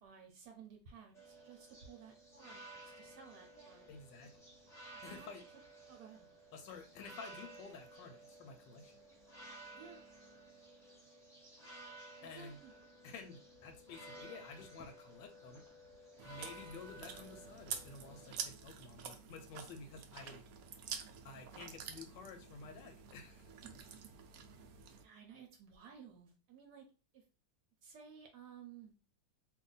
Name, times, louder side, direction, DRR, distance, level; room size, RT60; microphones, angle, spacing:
voice 1, 0.0-3.9 5.1-5.3 5.9-6.3 9.7-10.0 12.2-12.7 25.0-26.9 27.1-27.2 27.8-28.9, right 7 dB, 70° right, 2 dB, 1.1 m, -56 dB
sound 1, 1.1-18.3, right 1 dB, ahead, 0.8 m, -55 dB
voice 2, 3.9-4.4 5.0-5.4 6.5-9.0 12.2-12.6 13.0-15.6 16.2-20.4 21.2-23.5, left 4 dB, 75° left, 6 dB, 1.2 m, -52 dB
Chewing mastication, 16.2-25.0, right 7 dB, 85° right, 0.8 m, -48 dB
2.9 x 2.5 x 3.8 m, 0.34 s
omnidirectional pair, 2.1 m